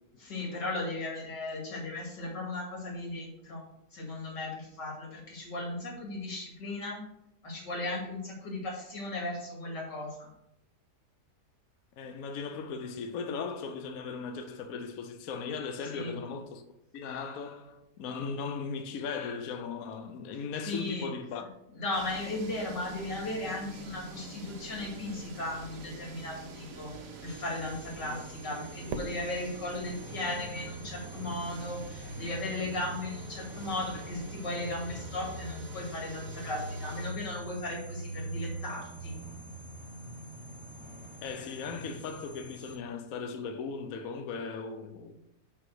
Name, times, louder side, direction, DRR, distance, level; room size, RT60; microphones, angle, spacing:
voice 1, 0.2-3.6 3.9-7.0 7.4-10.3 15.9-16.2 20.7-21.1 21.7-26.9 27.2-39.1, left 2 dB, 85° left, 2.9 m, -36 dB
voice 2, 12.0-16.6 16.9-21.5 28.1-28.2 41.2-45.2, left 5 dB, 65° left, 1.0 m, -37 dB
sound 1, 21.9-37.1, right 2 dB, 55° right, 1.3 m, -46 dB
sound 2, 27.3-42.8, right 1 dB, 45° left, 1.7 m, -44 dB
Fireworks, 28.9-31.2, right 3 dB, 80° right, 1.5 m, -43 dB
5.7 x 5.6 x 6.2 m
omnidirectional pair, 1.8 m